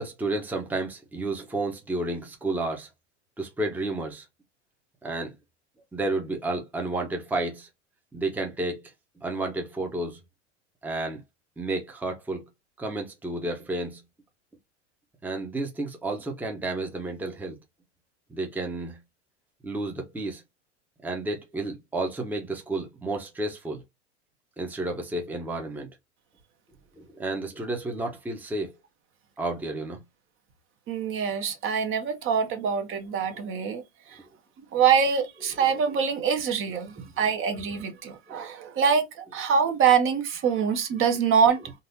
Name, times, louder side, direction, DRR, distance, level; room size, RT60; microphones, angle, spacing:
voice 1, 0.0-2.9 3.4-4.2 5.0-5.3 5.9-7.7 8.1-8.8 9.2-10.2 10.8-11.2 11.6-12.5 12.8-14.0 15.2-17.6 18.3-19.0 19.6-20.4 21.0-23.8 24.6-25.9 27.0-28.7 29.4-30.0 38.3-38.4, right 2 dB, 5° right, 0.8 m, -31 dB
voice 2, 30.9-34.2 34.7-41.8, right 6 dB, 35° right, 0.9 m, -24 dB
4.0 x 2.5 x 2.7 m
hypercardioid pair, 110°, 36 cm